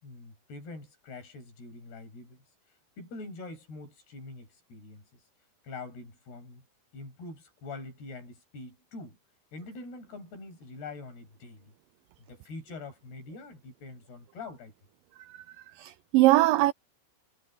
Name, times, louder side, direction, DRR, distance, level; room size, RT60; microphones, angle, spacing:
voice 1, 0.0-2.4 3.0-5.1 5.6-6.6 6.9-9.2 9.5-11.7 12.2-14.7, left 3 dB, 85° left, 9.5 m, -44 dB
voice 2, 15.8-16.7, right 17 dB, 90° right, 2.0 m, -22 dB
omnidirectional pair, 4.5 m